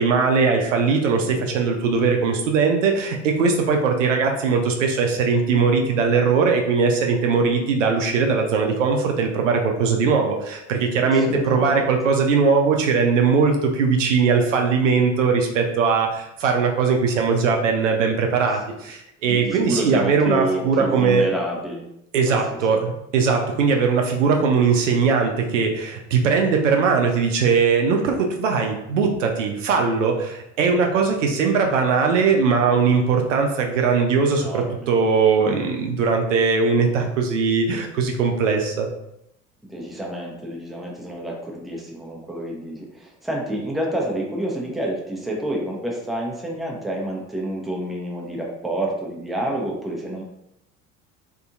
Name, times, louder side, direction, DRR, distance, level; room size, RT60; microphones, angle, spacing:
voice 1, 0.0-21.2 22.1-38.9, right 5 dB, 75° right, 2 dB, 0.5 m, -20 dB
voice 2, 1.1-1.4 11.0-11.9 19.2-21.8 22.3-22.6 34.3-34.9 35.4-35.7 39.6-50.2, right 1 dB, ahead, -2 dB, 0.6 m, -29 dB
2.7 x 2.6 x 2.4 m, 0.80 s
figure-of-eight pair, 60°, 38 cm